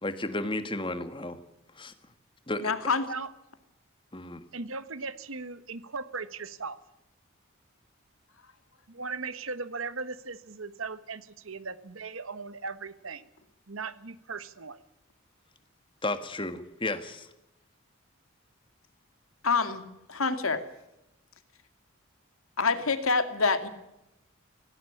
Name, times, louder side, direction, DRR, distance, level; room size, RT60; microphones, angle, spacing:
voice 1, 0.0-1.4 1.8-1.9 2.5-2.7 4.1-4.4 16.0-17.3, left 2 dB, 25° left, 10 dB, 1.6 m, -33 dB
voice 2, 2.6-3.0 19.4-19.8 20.1-20.6 22.6-23.7, left 4 dB, 85° left, 9 dB, 2.3 m, -26 dB
voice 3, 4.5-6.8 8.9-13.3 13.7-14.8, right 4 dB, 80° right, 14 dB, 1.3 m, -38 dB
17.5 x 17.0 x 9.9 m, 0.90 s
head